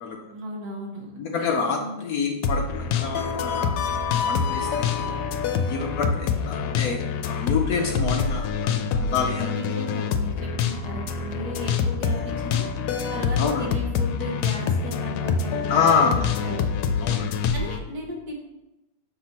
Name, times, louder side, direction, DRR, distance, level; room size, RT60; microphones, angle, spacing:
voice 1, 0.3-1.1 1.4-2.0 9.4-12.7 13.1-16.7 17.5-18.3, left 1 dB, 60° right, -2 dB, 1.8 m, -35 dB
voice 2, 1.2-3.7 4.1-5.1 5.7-9.5 13.4-13.7 15.7-16.2 17.0-17.3, left 5 dB, 65° left, 2 dB, 1.0 m, -27 dB
sound 1, 2.4-17.8, left 6 dB, 85° left, 1.3 m, -26 dB
6.7 x 5.8 x 2.9 m, 0.95 s
omnidirectional pair, 1.9 m